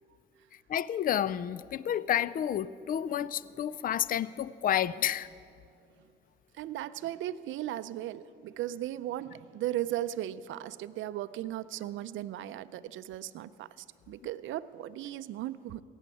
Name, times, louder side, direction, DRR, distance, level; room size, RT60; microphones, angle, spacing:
voice 1, 0.7-5.3, left 10 dB, 45° left, 19 dB, 0.4 m, -30 dB
voice 2, 6.5-15.8, right 13 dB, 75° right, 13 dB, 0.5 m, -37 dB
17.5 x 7.2 x 9.7 m, 2.4 s
cardioid pair, 90°, 20 cm